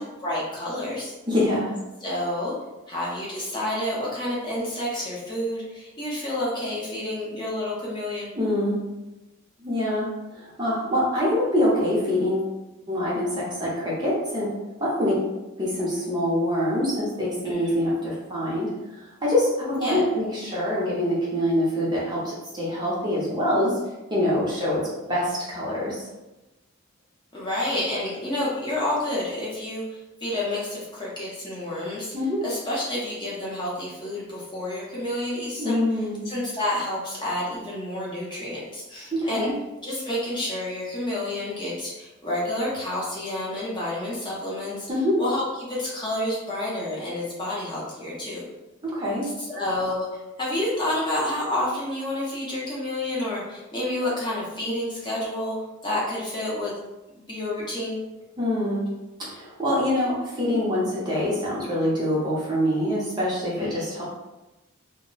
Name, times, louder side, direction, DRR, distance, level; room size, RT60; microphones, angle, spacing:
voice 1, 0.2-1.1 2.0-2.5 2.9-8.3 17.4-17.8 19.8-20.0 27.3-32.1 32.4-35.8 36.2-39.5 39.8-44.9 45.2-45.4 45.7-48.4 49.2-50.1 50.4-55.5 55.8-56.7 57.3-58.0 63.6-63.9, left 1 dB, 20° left, -7 dB, 0.7 m, -29 dB
voice 2, 1.3-1.7 8.3-8.9 9.6-12.5 12.9-14.5 14.8-15.2 15.6-23.8 24.1-26.1 32.1-32.4 35.6-36.2 39.1-39.5 44.9-45.2 48.8-49.3 58.4-58.9 59.2-64.0, left 1 dB, 20° right, -7 dB, 0.6 m, -25 dB
2.1 x 2.1 x 3.8 m, 1.0 s
head